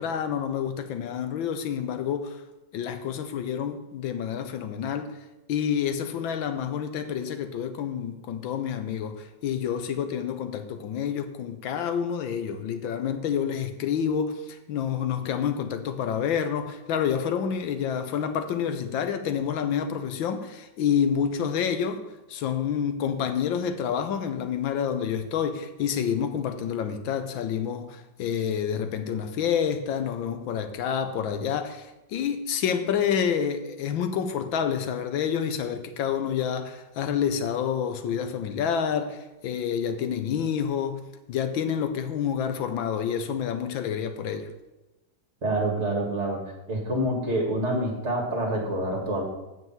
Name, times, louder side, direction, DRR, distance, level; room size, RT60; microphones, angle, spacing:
voice 1, 0.0-2.4 2.7-5.1 5.5-22.0 22.3-41.0 41.3-44.5, left 8 dB, 80° left, 1.6 m, -28 dB
voice 2, 45.4-46.4 46.7-49.2, right 1 dB, 35° right, 2.2 m, -27 dB
7.8 x 5.7 x 7.3 m
omnidirectional pair, 2.1 m